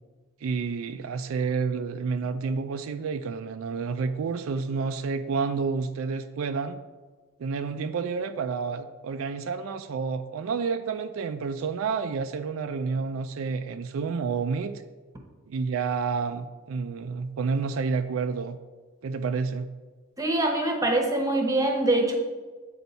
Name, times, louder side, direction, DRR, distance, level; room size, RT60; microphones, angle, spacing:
voice 1, 0.4-6.8 7.4-14.7 15.5-18.6 19.0-19.7, right 5 dB, 75° right, 9 dB, 0.4 m, -29 dB
voice 2, 20.2-22.1, right 2 dB, 15° right, 2 dB, 0.8 m, -24 dB
8.1 x 4.6 x 4.1 m, 1.3 s
head